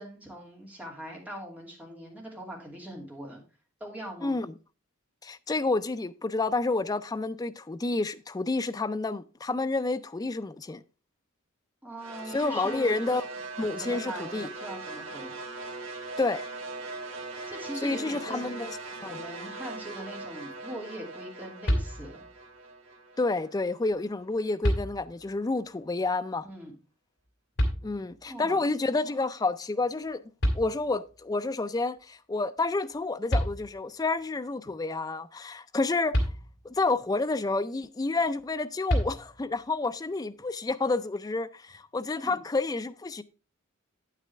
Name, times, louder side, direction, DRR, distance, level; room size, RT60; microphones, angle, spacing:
voice 1, 0.0-3.4 3.8-4.3 11.8-12.9 13.8-15.3 17.5-18.7 19.0-22.2 26.4-26.7 28.3-28.6 42.2-42.4, equal, 10° right, 2.6 m, -41 dB
voice 2, 4.2-4.5 5.2-10.8 12.3-13.2 13.6-14.5 16.2-16.4 17.8-19.2 23.2-26.5 27.8-30.2 30.5-36.3 36.6-43.2, left 3 dB, 20° left, 0.4 m, -29 dB
sound 1, 12.0-24.2, right 3 dB, 70° right, 2.5 m, -40 dB
sound 2, 21.6-22.4 23.9-24.0 24.6-25.4 27.6-28.3 30.1-30.2 30.4-31.2 32.9-33.0 33.3-34.0 36.1-36.9 38.9-39.6, equal, 60° left, 2.2 m, -29 dB
8.6 x 8.2 x 3.3 m
head